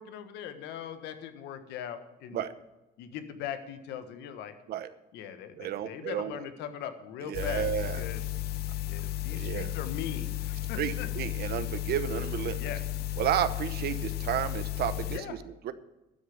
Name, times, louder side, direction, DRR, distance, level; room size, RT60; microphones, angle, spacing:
voice 1, 0.0-2.4 3.0-4.5 5.1-7.7 8.0-8.2 8.9-11.1 12.6-12.8 15.1-15.4, left 9 dB, 85° left, 10 dB, 1.4 m, -40 dB
voice 2, 5.6-6.4 7.2-8.0 9.3-9.7 10.8-12.6 13.2-15.7, right 11 dB, 70° right, 12 dB, 1.0 m, -32 dB
sound 1, 7.3-15.2, left 15 dB, 70° left, 0.8 m, -34 dB
12.5 x 6.8 x 8.6 m, 0.97 s
cardioid pair, 110°, 17 cm